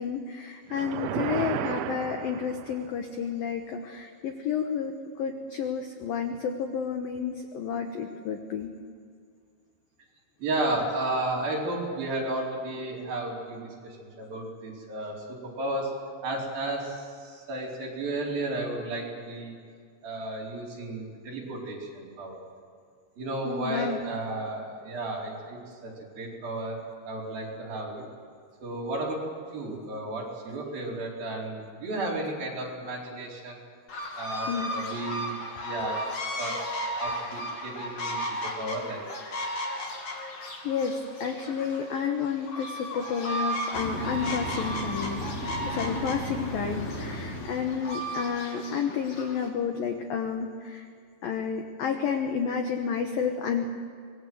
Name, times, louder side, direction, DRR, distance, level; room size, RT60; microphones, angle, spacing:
voice 1, 0.0-8.7 23.4-24.0 34.5-34.7 40.6-45.3 45.7-50.8 51.2-53.7, left 7 dB, 75° left, 5 dB, 2.2 m, -31 dB
sound 1, 0.7-3.0, right 14 dB, 85° right, 2.6 m, -33 dB
voice 2, 10.4-16.0 16.2-19.5 20.0-22.4 23.2-26.8 27.1-28.0 28.6-29.2 29.5-33.6 34.2-35.4 35.6-36.0 36.4-38.3 38.6-39.0, right 2 dB, 45° right, -3 dB, 5.7 m, -33 dB
sound 2, 33.9-49.5, equal, 40° left, 3.0 m, -35 dB
sound 3, 43.7-48.2, left 1 dB, 20° left, 2.8 m, -35 dB
25.5 x 21.0 x 7.9 m, 2.2 s
omnidirectional pair, 6.0 m